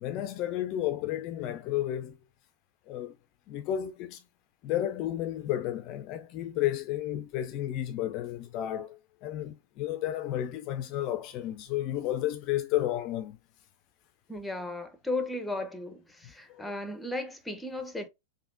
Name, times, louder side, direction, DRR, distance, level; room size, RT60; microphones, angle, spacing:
voice 1, 0.0-2.2 2.9-3.1 3.5-4.2 4.6-13.4 16.5-16.7, left 12 dB, 40° left, 0.3 m, -32 dB
voice 2, 14.3-18.1, left 2 dB, 5° left, 0.6 m, -35 dB
3.4 x 2.6 x 2.5 m
hypercardioid pair, 105°, 0 cm